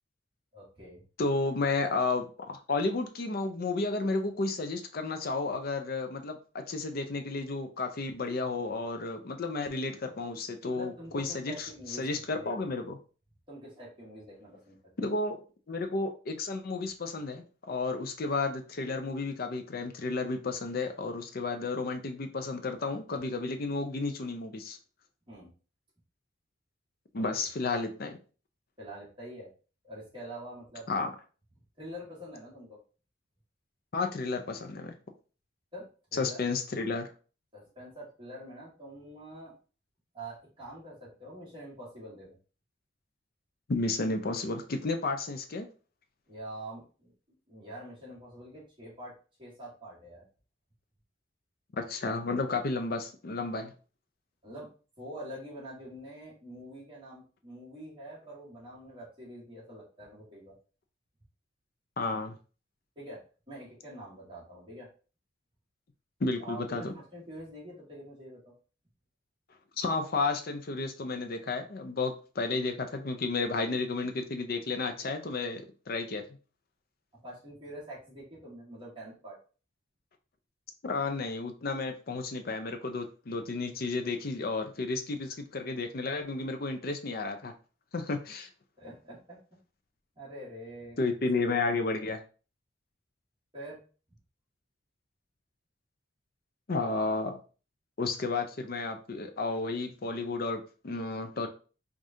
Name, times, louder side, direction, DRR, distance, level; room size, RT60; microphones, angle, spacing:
voice 1, 0.5-1.0 10.7-12.1 12.3-12.5 13.5-14.8 25.3-25.5 27.2-27.5 28.8-29.5 29.8-30.9 31.8-32.8 35.7-36.4 37.5-39.5 40.1-42.4 46.3-50.3 54.4-54.7 55.0-60.6 62.9-63.2 63.5-64.9 66.4-68.5 77.1-79.4 88.8-89.4 90.1-91.0 93.5-93.8, right 1 dB, 25° right, -6 dB, 1.6 m, -45 dB
voice 2, 1.2-13.0 15.0-15.4 15.7-24.8 27.1-28.2 30.9-31.1 33.9-34.9 36.1-37.1 43.7-45.7 51.8-53.7 62.0-62.3 66.2-66.9 69.8-76.2 80.8-87.5 87.9-88.5 91.0-92.2 96.7-97.4 98.0-101.5, left 3 dB, 50° left, 6 dB, 0.5 m, -32 dB
4.8 x 2.4 x 2.7 m, 0.37 s
head